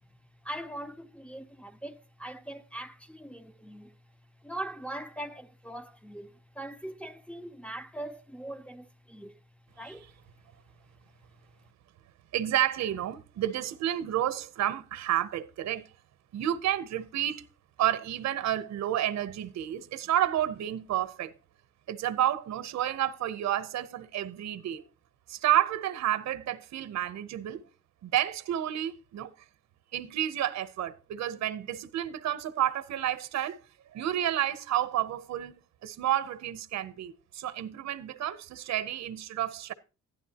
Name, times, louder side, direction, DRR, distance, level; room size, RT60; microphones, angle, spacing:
voice 1, 0.4-4.0 4.4-9.4 9.7-10.2, right 1 dB, 5° left, 0.6 m, -41 dB
voice 2, 12.3-15.9 16.3-17.4 17.8-21.3 21.9-24.8 25.3-27.6 28.0-29.3 29.9-33.6 33.9-39.7, right 12 dB, 65° right, 0.8 m, -30 dB
11.5 x 10.0 x 2.8 m
cardioid pair, 90°, 30 cm